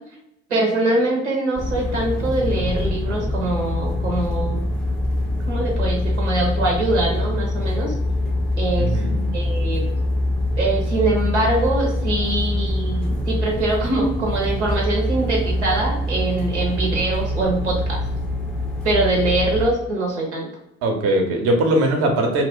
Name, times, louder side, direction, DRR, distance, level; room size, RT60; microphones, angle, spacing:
voice 1, 0.5-4.6 5.5-7.9 8.6-8.9 9.3-9.9 10.6-18.0 18.8-20.5, right 2 dB, 85° right, -2 dB, 0.7 m, -23 dB
sound 1, 1.5-19.7, left 1 dB, 5° left, 0.5 m, -24 dB
voice 2, 8.8-9.2 20.8-22.4, right 1 dB, 45° right, 3 dB, 0.7 m, -20 dB
2.4 x 2.1 x 3.6 m, 0.80 s
figure-of-eight pair, 65°, 34 cm